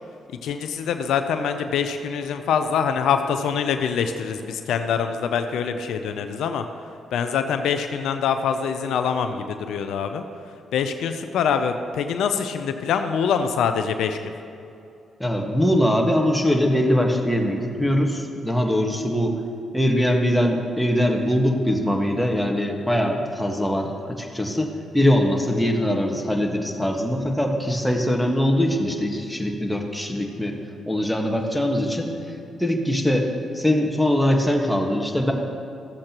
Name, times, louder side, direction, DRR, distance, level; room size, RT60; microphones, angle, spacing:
voice 1, 0.4-6.6 7.1-10.2 10.7-14.3, left 7 dB, 80° left, 7 dB, 0.5 m, -24 dB
voice 2, 15.2-19.4 19.7-30.5 30.9-32.1 32.6-33.3 33.5-35.3, equal, 5° left, 1 dB, 1.5 m, -22 dB
14.5 x 7.5 x 3.0 m, 2.6 s
supercardioid pair, 55°, 0 cm